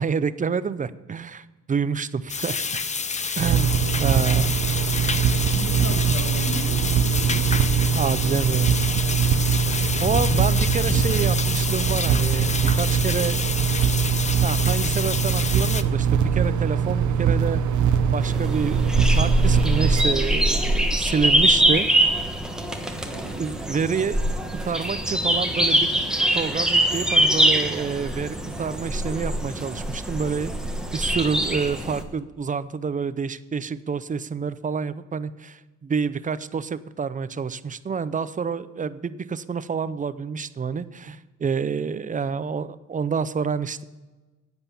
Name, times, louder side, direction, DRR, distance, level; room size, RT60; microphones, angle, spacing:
voice 1, 0.0-2.8 3.4-4.6 7.9-8.7 10.0-13.4 14.4-17.6 18.1-18.8 19.1-21.9 23.3-24.2 24.6-25.9 26.3-30.5 30.9-43.8, right 6 dB, 25° right, 16 dB, 0.5 m, -28 dB
sound 1, 2.3-15.8, left 5 dB, 25° left, 0.6 m, -28 dB
sound 2, 3.4-20.0, right 7 dB, 75° right, 0.9 m, -22 dB
voice 2, 5.5-7.8 21.4-21.7 23.0-23.3, left 1 dB, 55° left, -1 dB, 3.5 m, -36 dB
sound 3, 18.2-32.0, right 1 dB, ahead, 1.2 m, -23 dB
10.0 x 8.0 x 7.0 m, 1.2 s
cardioid pair, 90°, 30 cm